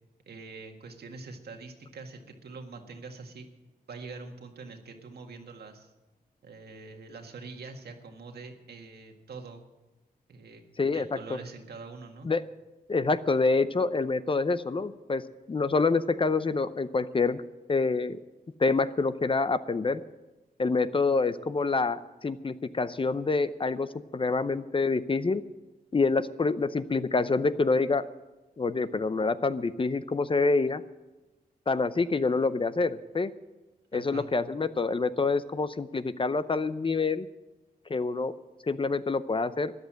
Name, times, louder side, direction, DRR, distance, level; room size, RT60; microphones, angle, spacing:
voice 1, 0.3-3.5 3.9-5.9 6.4-9.6 10.3-12.3 33.9-34.3, right 4 dB, 85° right, 4 dB, 1.8 m, -44 dB
voice 2, 10.8-11.4 12.2-12.5 12.9-17.4 17.7-18.2 18.6-20.0 20.6-25.4 25.9-28.1 28.6-30.8 31.7-33.3 33.9-37.3 37.9-38.3 38.7-39.7, left 3 dB, 35° left, 13 dB, 0.6 m, -27 dB
13.5 x 10.5 x 7.5 m, 1.1 s
wide cardioid pair, 95°, 16 cm